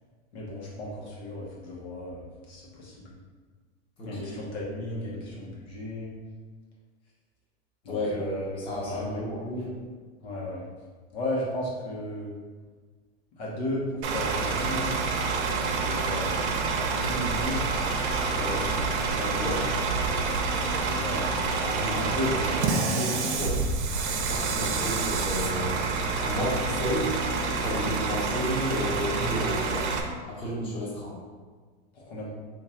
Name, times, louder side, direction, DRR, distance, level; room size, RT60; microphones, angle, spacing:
voice 1, 0.3-3.1 4.0-6.1 7.8-9.7 10.2-10.6 11.1-12.3 13.4-14.9 15.7-17.7 20.9-21.3 22.0-22.4 31.9-32.3, left 1 dB, 70° left, -5 dB, 1.4 m, -34 dB
voice 2, 4.0-4.3 7.9-8.3 8.6-9.4 18.1-19.6 21.6-22.2 22.5-23.6 24.3-25.8 26.2-27.1 27.6-30.0 30.3-31.2, left 1 dB, 15° left, -7 dB, 1.0 m, -32 dB
Bus / Idling, 14.0-30.0, right 4 dB, 80° right, 0.7 m, -28 dB
3.1 x 2.9 x 3.8 m, 1.5 s
supercardioid pair, 140°, 34 cm